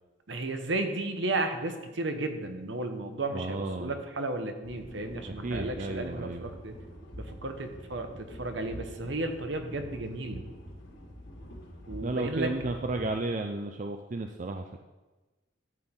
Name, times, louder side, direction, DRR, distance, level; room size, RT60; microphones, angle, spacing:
voice 1, 0.3-6.8 7.2-10.4 11.9-12.5, right 2 dB, 65° right, 6 dB, 1.1 m, -33 dB
voice 2, 3.3-4.0 5.3-6.5 12.0-14.8, right 2 dB, 40° right, 4 dB, 0.5 m, -33 dB
sound 1, 4.6-13.2, equal, 65° left, 2.0 m, -46 dB
12.5 x 8.0 x 3.8 m, 1.2 s
head